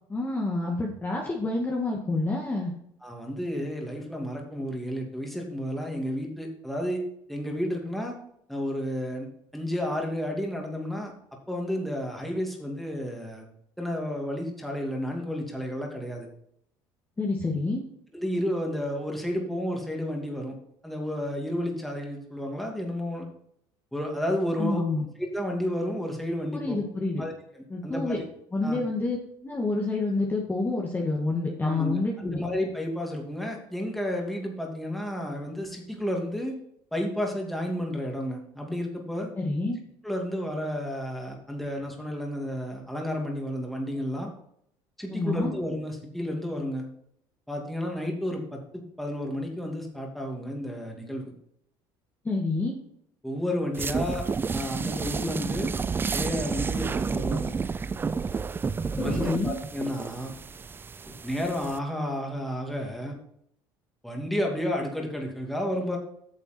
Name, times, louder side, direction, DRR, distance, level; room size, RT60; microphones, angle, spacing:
voice 1, 0.1-2.7 17.2-17.9 24.6-25.1 26.5-27.3 27.7-28.2 28.5-29.2 29.4-32.4 39.4-39.8 45.1-45.5 52.2-52.8 58.9-59.6, left 2 dB, 20° left, -1 dB, 1.8 m, -28 dB
voice 2, 3.0-7.0 7.3-8.1 8.5-9.3 9.5-11.1 11.5-13.5 13.8-16.3 18.1-20.6 20.8-23.3 23.9-24.8 25.2-26.8 27.2-28.2 28.6-28.8 31.6-36.6 36.9-39.3 40.0-44.3 45.0-46.8 47.5-51.3 53.2-54.3 54.5-55.7 56.1-57.5 59.0-60.3 61.2-63.2 64.0-66.0, equal, ahead, 0 dB, 2.6 m, -31 dB
sound 1, 53.7-61.8, right 5 dB, 20° right, 0.4 m, -30 dB
9.4 x 6.8 x 4.4 m, 0.71 s
supercardioid pair, 100°, 10 cm